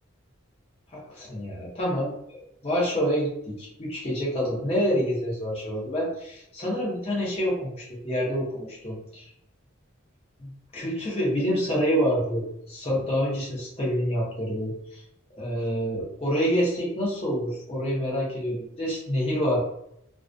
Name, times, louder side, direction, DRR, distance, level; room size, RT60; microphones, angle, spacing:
voice 1, 0.9-2.1 2.6-9.3 10.4-15.0 15.3-19.6, equal, 30° left, -5 dB, 0.7 m, -27 dB
2.3 x 2.2 x 2.5 m, 0.76 s
head